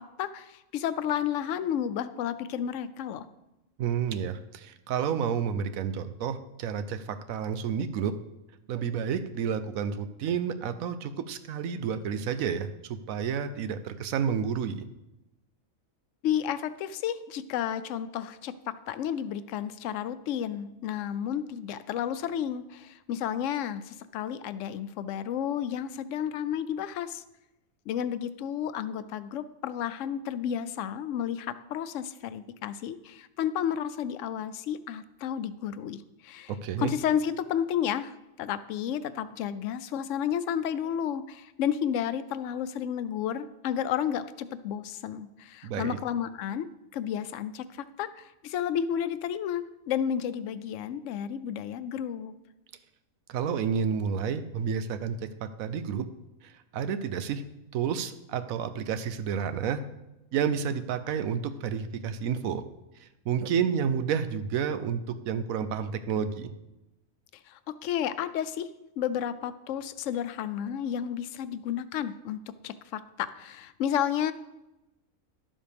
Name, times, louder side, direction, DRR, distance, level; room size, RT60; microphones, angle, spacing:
voice 1, 0.2-3.2 16.2-27.2 27.9-36.5 36.8-46.7 46.9-52.3 67.5-68.7 69.0-74.3, left 9 dB, 70° left, 14 dB, 0.9 m, -32 dB
voice 2, 3.8-8.2 8.7-14.9 36.6-36.9 45.6-46.0 53.3-56.1 56.4-57.4 57.7-59.8 60.3-62.6 63.0-66.5, right 7 dB, 80° right, 10 dB, 1.1 m, -30 dB
11.5 x 7.3 x 3.4 m, 0.95 s
omnidirectional pair, 1.5 m